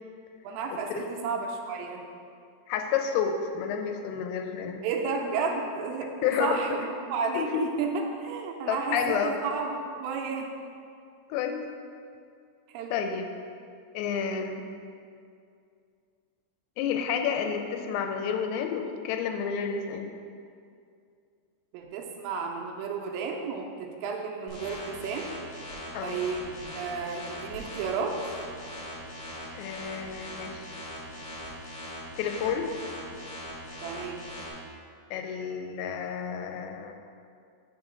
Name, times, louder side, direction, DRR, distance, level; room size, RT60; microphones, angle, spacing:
voice 1, 0.4-2.0 4.8-6.1 6.4-10.5 12.7-13.0 21.7-25.3 26.0-28.2 33.8-34.2, right 5 dB, 90° right, 1 dB, 3.2 m, -32 dB
voice 2, 2.7-4.8 6.2-6.6 7.4-7.7 8.7-9.3 11.3-11.6 12.9-13.3 13.9-14.6 16.8-20.1 25.9-26.2 29.5-30.7 32.2-32.7 35.1-37.0, left 7 dB, 85° left, 5 dB, 3.2 m, -30 dB
sound 1, 24.5-34.5, equal, 65° left, 2.0 m, -41 dB
7.0 x 3.8 x 6.1 m, 2.3 s
omnidirectional pair, 5.8 m